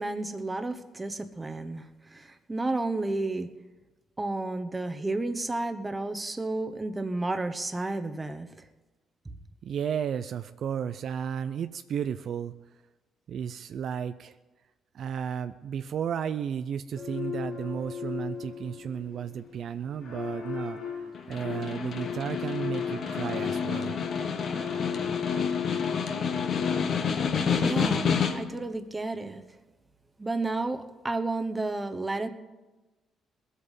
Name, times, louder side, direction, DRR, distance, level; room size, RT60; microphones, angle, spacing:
voice 1, 0.0-3.5 4.2-8.5 27.5-29.4 30.2-32.3, right 2 dB, 20° right, 8 dB, 1.1 m, -31 dB
voice 2, 9.6-12.5 13.3-14.3 14.9-24.0, right 8 dB, 65° right, 10 dB, 0.5 m, -33 dB
sound 1, 16.9-26.8, left 7 dB, 90° left, 4.0 m, -36 dB
Snare drum, 21.1-28.6, left 6 dB, 60° left, 1.1 m, -29 dB
19.5 x 8.3 x 5.6 m, 1.1 s
cardioid pair, 90°, 0 cm